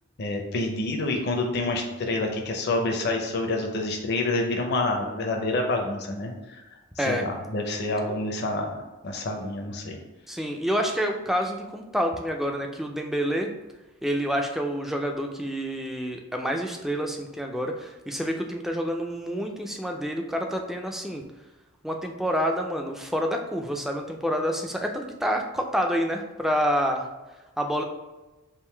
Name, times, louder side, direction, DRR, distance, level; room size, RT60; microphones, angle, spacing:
voice 1, 0.2-6.6 7.0-8.7 9.0-10.0, left 2 dB, 50° left, 2 dB, 0.5 m, -28 dB
voice 2, 10.3-13.5 14.0-21.2 21.8-27.1 27.6-27.8, equal, ahead, 3 dB, 0.3 m, -28 dB
3.6 x 2.6 x 4.4 m, 1.1 s
head